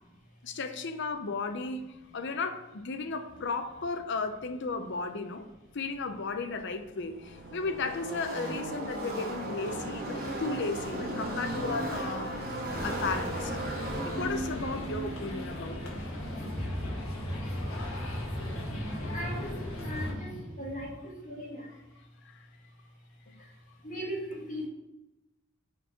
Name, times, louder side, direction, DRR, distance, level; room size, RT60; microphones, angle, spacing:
voice 1, 0.4-1.9 2.1-5.5 5.7-12.5 12.8-13.6 14.0-15.9 23.3-23.4 24.1-24.2, left 4 dB, 60° left, 0.6 m, -35 dB
Car passing by / Race car auto racing, 6.4-17.0, right 1 dB, 45° right, 2.3 m, -36 dB
sound 1, 12.7-20.1, left 1 dB, 75° left, 1.5 m, -39 dB
sound 2, 15.8-20.9, equal, 15° left, 2.3 m, -38 dB
voice 2, 19.1-19.6 19.8-20.3 20.6-21.7 23.8-24.7, equal, 40° left, 1.8 m, -38 dB
5.8 x 4.4 x 5.9 m
head